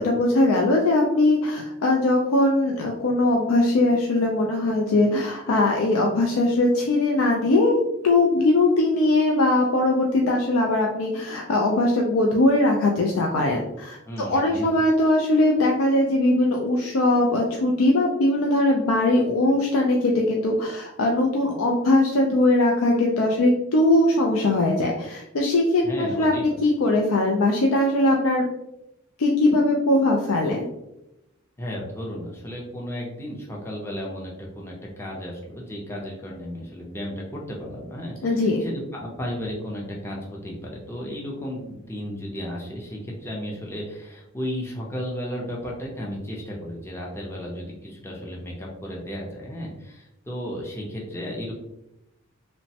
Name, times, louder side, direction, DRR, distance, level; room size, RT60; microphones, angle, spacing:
voice 1, 0.0-7.8 8.0-28.5 29.2-30.7 38.2-38.7, left 2 dB, 80° left, 0 dB, 0.4 m, -21 dB
voice 2, 14.0-14.7 25.8-26.6 31.6-51.5, equal, 10° left, -3 dB, 0.5 m, -34 dB
3.0 x 2.1 x 2.7 m, 0.88 s
head